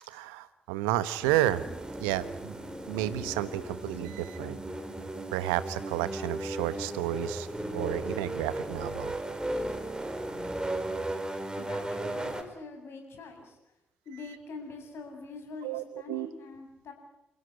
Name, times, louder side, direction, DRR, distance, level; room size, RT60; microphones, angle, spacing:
voice 1, 0.1-1.6 2.0-2.6 2.9-4.6 5.3-7.5 7.7-9.1 15.6-16.3, right 14 dB, 75° right, 14 dB, 1.2 m, -31 dB
sound 1, 1.2-12.4, right 1 dB, 15° right, 4.5 m, -36 dB
voice 2, 11.5-13.6 14.0-16.9, left 3 dB, 55° left, 4 dB, 7.8 m, -44 dB
30.0 x 16.0 x 10.0 m, 0.89 s
figure-of-eight pair, 45°, 5 cm